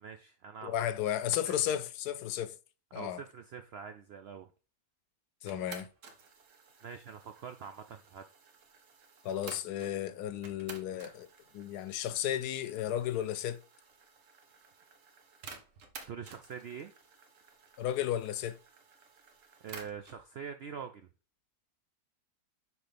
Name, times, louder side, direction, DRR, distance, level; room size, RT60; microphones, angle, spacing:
voice 1, 0.0-0.7 1.5-1.8 2.9-4.5 6.8-8.2 16.1-16.9 19.6-21.1, right 7 dB, 75° right, 0.5 m, -44 dB
voice 2, 0.6-2.6 2.9-3.2 5.4-5.9 9.2-11.3 11.5-13.6 17.8-18.6, left 11 dB, 85° left, 1.1 m, -33 dB
sound 1, 5.5-9.9 10.4-20.2, right 5 dB, 60° right, 1.2 m, -53 dB
6.1 x 4.7 x 3.4 m
omnidirectional pair, 1.6 m